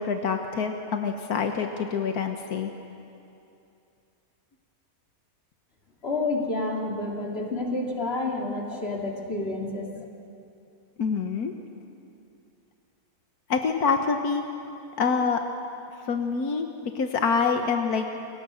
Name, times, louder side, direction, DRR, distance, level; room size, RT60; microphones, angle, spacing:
voice 1, 0.0-2.7 11.0-11.5 13.5-14.4 15.0-15.4 16.1-18.0, left 5 dB, 85° left, 5 dB, 1.6 m, -26 dB
voice 2, 6.0-9.9, left 2 dB, 40° left, 0 dB, 2.9 m, -29 dB
28.0 x 23.5 x 6.4 m, 2.7 s
omnidirectional pair, 1.6 m